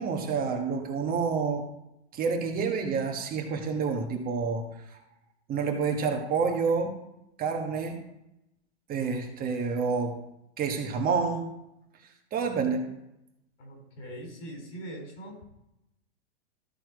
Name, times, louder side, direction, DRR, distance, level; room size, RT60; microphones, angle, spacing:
voice 1, 0.0-1.6 2.1-5.0 5.5-7.0 7.4-8.0 8.9-10.2 10.6-11.5 12.3-12.9, right 5 dB, 25° right, 3 dB, 1.3 m, -28 dB
voice 2, 13.6-15.4, right 1 dB, 85° left, 2 dB, 4.0 m, -42 dB
13.5 x 4.5 x 4.7 m, 0.87 s
hypercardioid pair, 125°, 35 cm